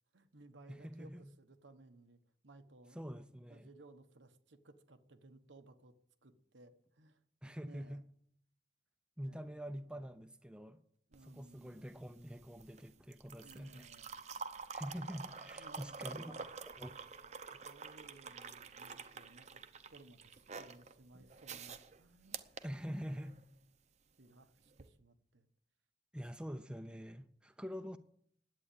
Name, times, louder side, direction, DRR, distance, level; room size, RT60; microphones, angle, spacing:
voice 1, 0.1-3.0 3.5-5.9 6.2-8.0 9.2-9.5 11.1-11.8 13.4-14.2 15.0-16.6 17.6-19.6 19.9-22.4 22.9-23.3 24.2-25.5, right 2 dB, 90° right, 1.2 m, -60 dB
voice 2, 0.7-1.2 2.9-3.7 7.4-8.0 9.2-10.8 11.2-13.9 14.7-16.4 16.8-16.9 17.5-17.6 22.6-23.4 26.1-28.0, equal, 5° right, 0.6 m, -45 dB
sound 1, 11.1-23.4 24.7-24.9, right 5 dB, 40° right, 0.7 m, -48 dB
11.0 x 8.7 x 8.5 m
head